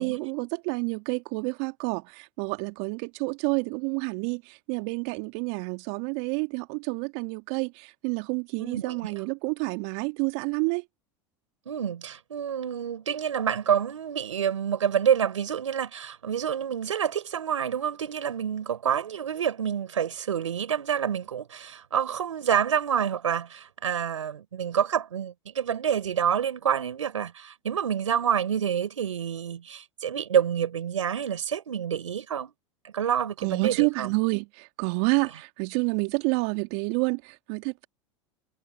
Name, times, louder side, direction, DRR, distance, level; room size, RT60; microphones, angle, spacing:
voice 1, 0.0-10.8 33.4-37.9, right 32 dB, 60° right, 2.9 m, -29 dB
voice 2, 8.6-9.0 11.7-32.5 32.8-34.1, right 8 dB, 85° right, 4.5 m, -28 dB
hypercardioid pair, 85°, 16 cm